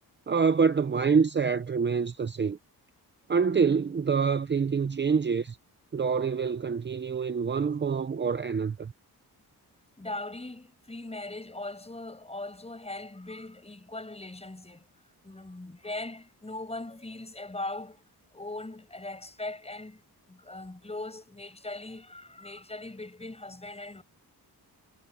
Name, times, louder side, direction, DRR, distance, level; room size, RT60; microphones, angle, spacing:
voice 1, 0.3-2.6 3.3-5.6 5.9-8.9, right 5 dB, 30° right, 0.7 m, -26 dB
voice 2, 10.0-14.9 15.2-18.0 18.3-20.0 20.3-24.0, left 2 dB, 15° left, 7.4 m, -40 dB
wide cardioid pair, 110°, 38 cm